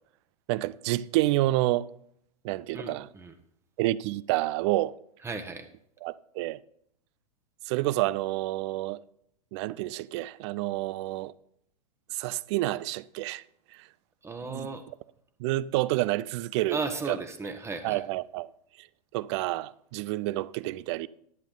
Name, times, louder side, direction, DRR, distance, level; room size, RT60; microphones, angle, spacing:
voice 1, 0.5-1.9 2.4-3.1 3.8-5.0 6.0-6.6 7.7-9.0 9.5-11.3 12.1-13.4 13.7-13.8 14.5-14.7 15.4-16.8 17.1-17.2 17.8-18.5 18.8-18.9 19.1-21.1, right 17 dB, 45° right, 0.5 m, -29 dB
voice 2, 2.7-3.3 5.2-5.7 14.2-14.8 16.7-18.0, right 3 dB, 15° right, 1.1 m, -35 dB
11.0 x 9.9 x 3.9 m
figure-of-eight pair, 95°, 20 cm